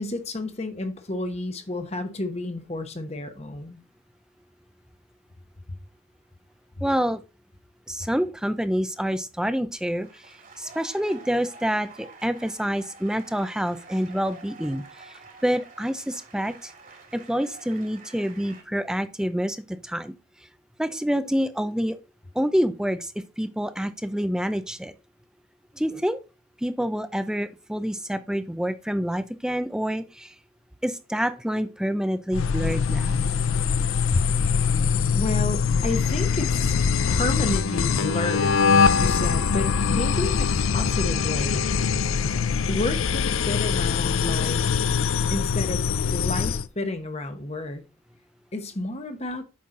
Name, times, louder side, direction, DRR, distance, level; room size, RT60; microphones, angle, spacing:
voice 1, 0.0-3.8 5.7-5.8 34.0-41.7 42.7-44.7 45.3-47.8 48.5-49.4, left 2 dB, 30° left, 1.0 m, -31 dB
voice 2, 6.8-7.2 7.9-16.7 17.1-20.1 20.8-22.0 22.3-24.9 25.7-26.2 26.6-30.3 30.8-33.2, equal, 5° right, 0.5 m, -27 dB
sound 1, 9.8-18.6, right 4 dB, 45° right, 2.0 m, -48 dB
sound 2, 32.3-46.7, left 6 dB, 85° left, 0.5 m, -23 dB
8.5 x 5.6 x 3.8 m
head